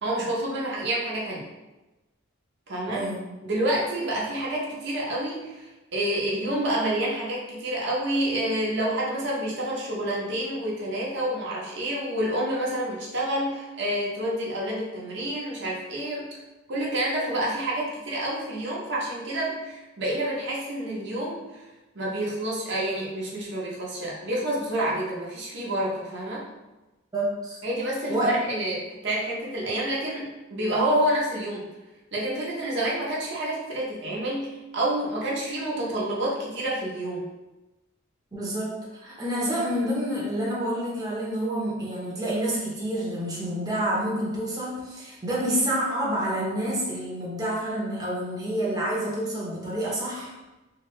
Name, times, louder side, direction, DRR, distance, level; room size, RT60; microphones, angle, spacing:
voice 1, 0.0-1.5 2.7-3.0 3.4-16.3 16.7-21.4 21.9-26.5 27.6-31.6 32.1-37.2, right 1 dB, 55° right, -4 dB, 0.7 m, -28 dB
voice 2, 2.9-3.2 27.1-27.6 28.1-28.3 38.3-38.7 39.0-50.3, right 1 dB, 20° right, -6 dB, 0.7 m, -28 dB
2.9 x 2.6 x 3.1 m, 1.0 s
head